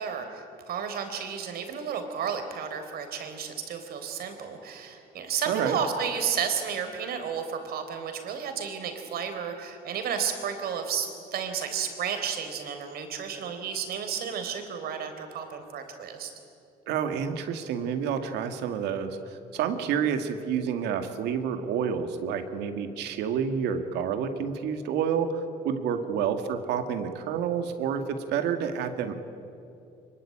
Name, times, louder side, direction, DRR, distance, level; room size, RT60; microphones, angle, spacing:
voice 1, 0.0-16.3, right 7 dB, 65° right, 6 dB, 4.1 m, -32 dB
voice 2, 5.5-5.8 16.9-29.1, right 7 dB, 85° right, 7 dB, 2.2 m, -29 dB
24.0 x 22.5 x 8.8 m, 2.7 s
cardioid pair, 110°, 17 cm